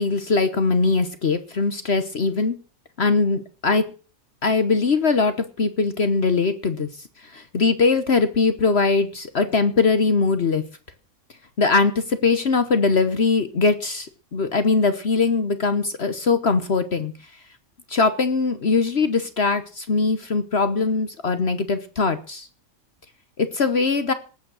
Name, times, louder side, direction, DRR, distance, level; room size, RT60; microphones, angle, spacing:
voice 1, 0.0-2.6 3.0-3.9 4.4-6.9 7.3-10.6 11.6-17.1 17.9-22.5 23.4-24.1, left 4 dB, 50° left, 11 dB, 1.3 m, -21 dB
19.0 x 8.7 x 6.3 m, 0.38 s
omnidirectional pair, 1.5 m